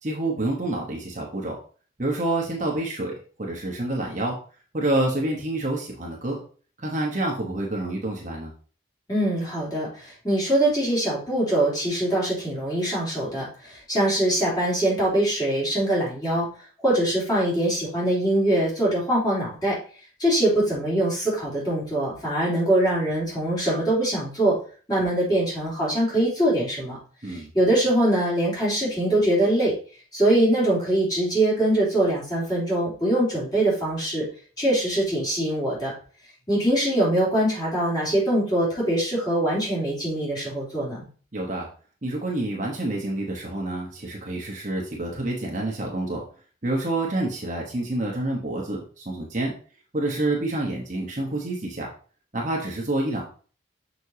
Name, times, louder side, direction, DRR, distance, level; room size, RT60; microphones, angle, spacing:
voice 1, 0.0-1.6 2.0-4.4 4.7-6.4 6.8-8.5 27.2-27.5 41.3-41.7 42.0-46.2 46.6-49.5 49.9-51.9 52.3-53.2, right 2 dB, 35° right, -1 dB, 1.1 m, -28 dB
voice 2, 9.1-16.5 16.8-19.8 20.2-24.6 24.9-27.0 27.2-29.7 30.1-34.2 34.6-35.9 36.5-41.1, right 1 dB, 20° left, -7 dB, 3.3 m, -23 dB
6.5 x 5.3 x 2.8 m, 0.40 s
head